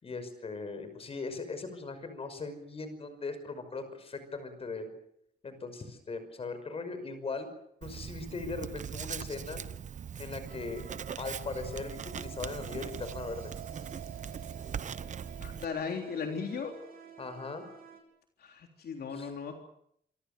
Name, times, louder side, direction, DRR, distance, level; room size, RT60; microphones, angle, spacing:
voice 1, 0.0-4.9 5.4-7.5 7.8-9.6 10.2-10.9 11.2-13.5 17.2-17.6 19.2-19.3, left 3 dB, 35° left, 10 dB, 5.6 m, -39 dB
Writing, 7.8-15.6, right 7 dB, 45° right, 0.9 m, -41 dB
sound 1, 10.4-18.0, right 8 dB, 65° right, 7.4 m, -49 dB
voice 2, 15.4-16.7 18.4-19.6, left 5 dB, 65° left, 3 dB, 3.6 m, -37 dB
28.0 x 24.5 x 6.9 m, 0.71 s
wide cardioid pair, 180°, 17 cm